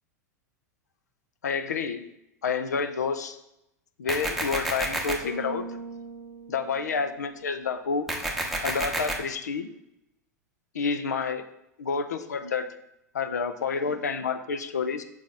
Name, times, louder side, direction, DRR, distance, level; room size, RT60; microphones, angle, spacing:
voice 1, 1.4-2.1 2.4-3.4 4.0-5.7 6.5-8.1 8.6-9.7 10.7-11.5 11.8-12.7 13.1-15.0, left 5 dB, 70° left, 9 dB, 0.5 m, -29 dB
sound 1, 4.1-5.1 8.1-9.1, right 1 dB, ahead, 0.9 m, -29 dB
Bass guitar, 5.2-7.6, right 2 dB, 40° left, 1.0 m, -40 dB
6.4 x 4.0 x 3.7 m, 0.86 s
figure-of-eight pair, 90°, 9 cm